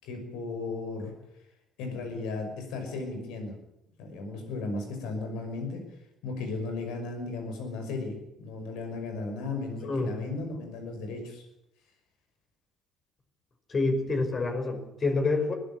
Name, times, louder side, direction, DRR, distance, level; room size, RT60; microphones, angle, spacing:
voice 1, 0.0-1.1 1.8-3.5 4.0-5.8 6.2-11.5, left 3 dB, 70° left, 5 dB, 5.7 m, -35 dB
voice 2, 13.7-15.5, left 3 dB, 40° left, 5 dB, 5.5 m, -27 dB
21.5 x 15.0 x 10.0 m, 0.84 s
hypercardioid pair, 50°, 0 cm